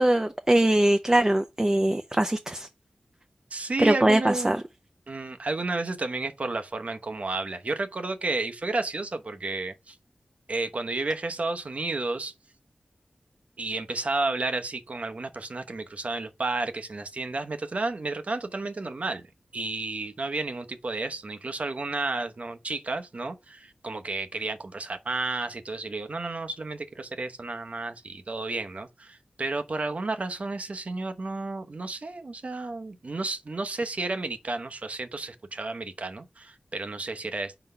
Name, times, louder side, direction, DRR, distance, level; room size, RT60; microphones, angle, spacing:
voice 1, 0.0-2.7 3.8-4.6, right 1 dB, 20° right, 0.5 m, -22 dB
voice 2, 3.5-4.6 5.1-10.0 10.5-12.3 13.6-19.2 19.5-37.6, right 3 dB, 55° right, 0.8 m, -32 dB
4.4 x 4.0 x 5.4 m
wide cardioid pair, 60°, 3 cm